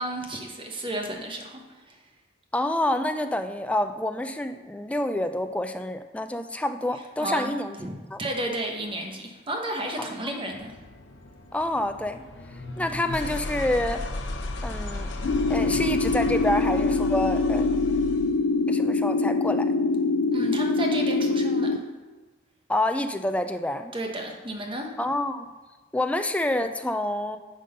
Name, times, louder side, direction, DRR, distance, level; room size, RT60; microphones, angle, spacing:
voice 1, 0.0-2.0 7.2-7.5 7.8-10.7 20.3-21.8 23.9-24.9, right 1 dB, 25° right, 2 dB, 1.0 m, -32 dB
voice 2, 2.5-7.8 8.1-8.2 10.0-10.1 11.5-12.2 12.8-14.0 14.6-15.1 15.5-17.7 18.7-19.7 22.7-23.9 25.0-25.5 25.9-27.4, left 1 dB, 5° left, 8 dB, 0.4 m, -27 dB
sound 1, 10.5-18.4, left 2 dB, 70° left, 0.8 m, -35 dB
sound 2, 15.2-21.8, left 3 dB, 85° left, 0.4 m, -24 dB
10.0 x 3.9 x 5.3 m, 1.3 s
head